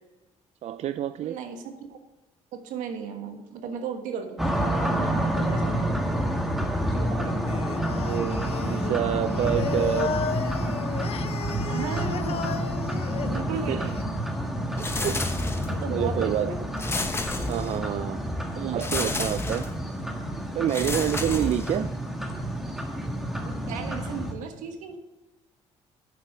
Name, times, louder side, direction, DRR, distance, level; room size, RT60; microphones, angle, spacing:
voice 1, 0.6-1.4 7.7-10.2 13.7-13.8 14.8-15.3 15.9-16.5 17.5-18.3 18.6-19.7 20.6-21.9, right 11 dB, 60° right, 13 dB, 0.4 m, -28 dB
voice 2, 1.2-2.0 2.5-6.0 6.7-7.4 11.6-12.6 13.2-13.9 15.6-16.6 21.3-21.6 23.7-25.0, right 6 dB, 85° right, 6 dB, 1.5 m, -36 dB
sound 1, 4.4-24.3, right 1 dB, ahead, 1.6 m, -29 dB
Singing, 7.5-14.0, left 7 dB, 50° left, 0.6 m, -34 dB
sound 2, 14.8-15.9 16.8-18.0 18.8-19.8 20.7-22.0, left 2 dB, 20° left, 1.1 m, -31 dB
9.2 x 7.4 x 5.0 m, 1.1 s
cardioid pair, 95°, 13 cm